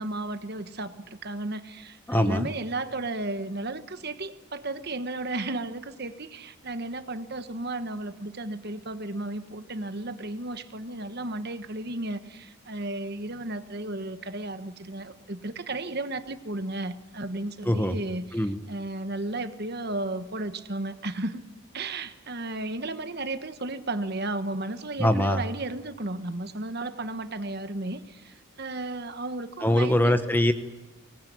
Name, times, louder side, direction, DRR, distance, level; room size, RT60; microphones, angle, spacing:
voice 1, 0.0-21.4 21.7-30.2, right 2 dB, 45° right, 10 dB, 1.3 m, -34 dB
voice 2, 2.1-2.5 17.6-17.9 18.3-18.6 25.0-25.4 29.6-30.5, left 1 dB, 10° left, 9 dB, 1.0 m, -22 dB
24.5 x 20.0 x 9.4 m, 1.2 s
head